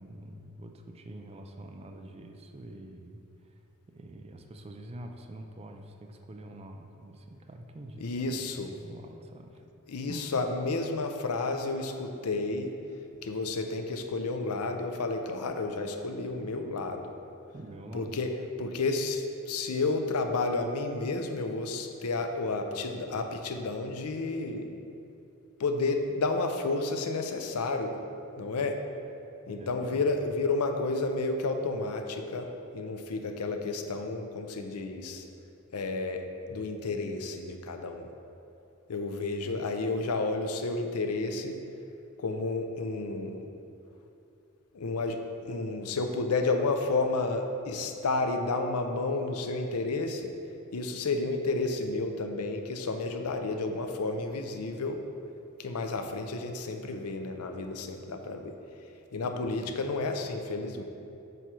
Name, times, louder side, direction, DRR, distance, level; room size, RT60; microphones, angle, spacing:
voice 1, 0.0-3.5 3.9-8.2 8.7-9.6 10.0-10.4 17.5-18.2 29.5-30.1 39.4-39.7 59.2-59.9, right 1 dB, 30° right, 4 dB, 0.4 m, -46 dB
voice 2, 8.0-8.7 9.9-12.8 13.2-17.1 17.9-18.3 18.6-24.7 25.6-28.0 28.4-28.8 29.5-35.2 35.7-38.1 38.9-41.6 42.2-43.5 44.7-50.3 50.7-55.1 55.6-58.6 59.1-60.8, left 3 dB, 85° left, 5 dB, 0.6 m, -31 dB
7.9 x 3.1 x 5.9 m, 2.8 s
head